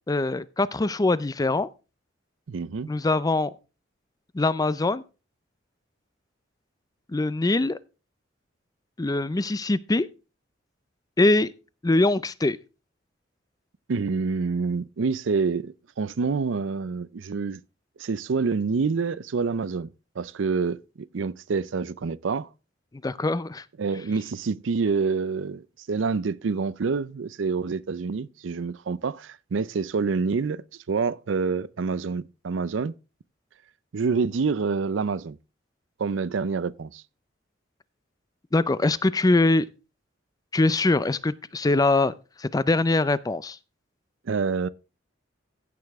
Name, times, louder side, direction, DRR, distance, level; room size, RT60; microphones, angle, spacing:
voice 1, 0.1-1.7 2.9-3.5 4.3-5.0 7.1-7.8 9.0-10.1 11.2-11.5 11.8-12.6 23.0-23.6 38.5-39.7 40.5-42.1 42.4-43.6, left 2 dB, 20° left, 0.4 m, -23 dB
voice 2, 2.5-2.9 13.9-17.6 18.0-19.9 20.2-22.5 23.8-32.9 33.9-35.4 36.0-37.0 44.3-44.7, right 4 dB, 85° right, 0.5 m, -27 dB
15.5 x 6.8 x 3.5 m
head